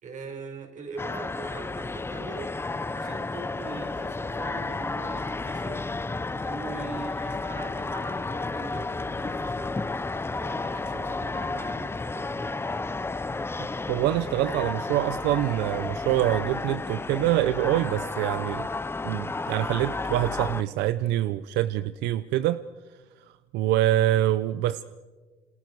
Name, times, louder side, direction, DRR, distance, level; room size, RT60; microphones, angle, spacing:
voice 1, 0.0-2.5 2.9-5.9 6.4-10.1 10.4-12.7, right 4 dB, 45° right, 4.9 m, -42 dB
sound 1, 1.0-20.6, left 3 dB, 15° left, 0.8 m, -32 dB
voice 2, 13.9-18.7 19.0-22.6 23.5-24.8, right 14 dB, 90° right, 0.6 m, -25 dB
27.5 x 27.5 x 4.7 m
cardioid pair, 110°, 17 cm